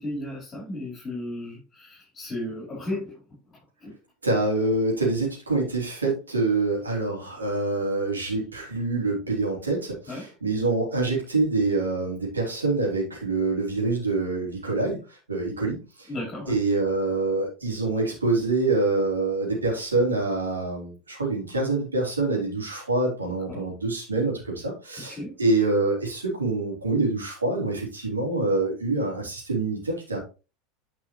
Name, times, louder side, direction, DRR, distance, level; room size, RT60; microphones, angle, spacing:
voice 1, 0.0-3.2 3.5-3.9 10.1-10.3 16.1-16.5 23.5-23.6 25.1-25.3, left 1 dB, 25° left, -5 dB, 4.3 m, -35 dB
voice 2, 4.2-16.1 16.5-30.2, right 3 dB, 80° right, -2 dB, 3.3 m, -26 dB
9.7 x 5.4 x 3.2 m, 0.32 s
figure-of-eight pair, 80°, 0 cm